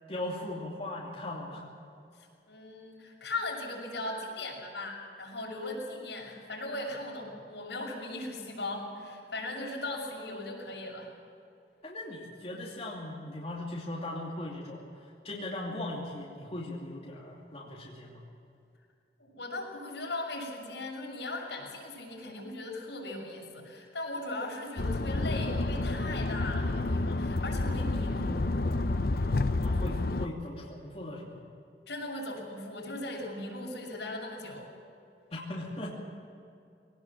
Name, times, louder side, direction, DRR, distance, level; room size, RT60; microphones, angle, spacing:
voice 1, 0.1-1.6 11.8-14.8 15.2-18.2 29.6-31.4 35.3-35.9, left 1 dB, 35° left, -4 dB, 2.8 m, -38 dB
voice 2, 2.2-11.1 19.2-28.4 31.9-34.7, left 2 dB, 80° left, -2 dB, 6.7 m, -38 dB
sound 1, 24.8-30.3, left 2 dB, 60° left, 0.7 m, -29 dB
21.5 x 18.5 x 7.5 m, 2.6 s
head